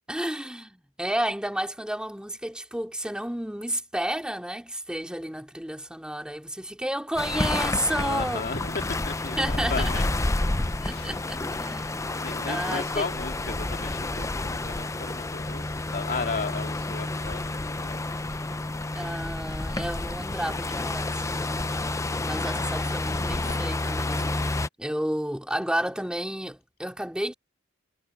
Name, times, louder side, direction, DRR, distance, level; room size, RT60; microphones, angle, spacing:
voice 1, 0.1-8.4 9.4-10.0 10.8-12.0 12.4-13.1 18.9-21.6 22.2-24.5 24.8-27.3, right 1 dB, 5° right, 2.7 m, -31 dB
sound 1, 7.2-24.7, left 2 dB, 15° left, 0.5 m, -29 dB
voice 2, 8.0-10.0 10.8-11.2 12.1-18.0 23.4-23.5, left 4 dB, 45° left, 2.5 m, -35 dB
head